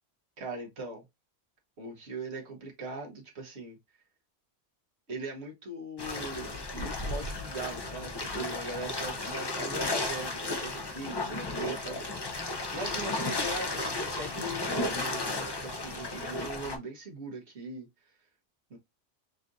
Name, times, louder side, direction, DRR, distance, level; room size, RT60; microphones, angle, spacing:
voice 1, 0.4-1.0 1.8-3.8 5.1-12.4 12.7-17.9 18.7-18.8, right 2 dB, 65° right, 1.4 m, -40 dB
sound 1, 6.0-16.8, left 2 dB, 30° left, 0.5 m, -34 dB
6.4 x 2.5 x 2.6 m
omnidirectional pair, 1.2 m